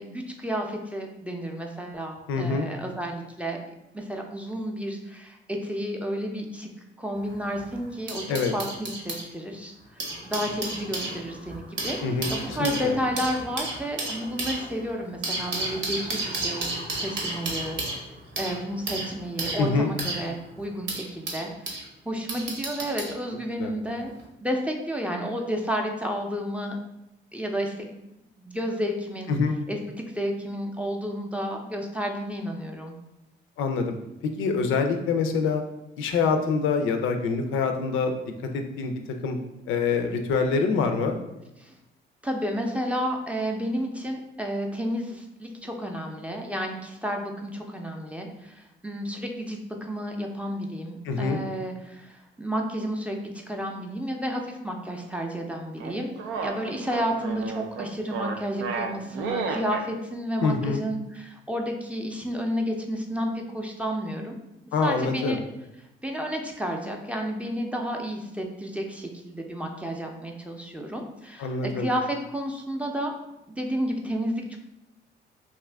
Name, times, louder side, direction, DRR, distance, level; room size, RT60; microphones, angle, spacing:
voice 1, 0.0-3.6 3.9-6.7 7.0-9.7 10.2-16.7 17.0-17.8 18.4-24.1 24.4-26.8 27.3-27.9 28.4-29.3 29.7-29.8 30.1-33.0 41.6-41.8 42.2-53.2 53.5-56.1 56.4-64.4 64.8-65.4 66.0-73.1 73.6-74.6, equal, 5° right, 1 dB, 0.4 m, -31 dB
voice 2, 2.3-2.7 8.3-8.5 12.0-13.0 19.6-19.9 23.6-23.7 29.3-29.5 33.6-33.9 34.4-35.6 36.0-38.1 38.5-38.9 39.2-39.4 39.7-41.2 51.0-51.4 60.4-60.8 64.7-65.4 71.4-71.9, left 4 dB, 85° left, 5 dB, 0.4 m, -25 dB
sound 1, 7.2-9.3 9.8-21.9 22.3-23.2 24.1-24.2, right 2 dB, 70° right, 0.8 m, -33 dB
sound 2, 55.8-59.9, right 5 dB, 90° right, 0.4 m, -32 dB
2.7 x 2.4 x 3.3 m, 0.91 s
cardioid pair, 90°, 20 cm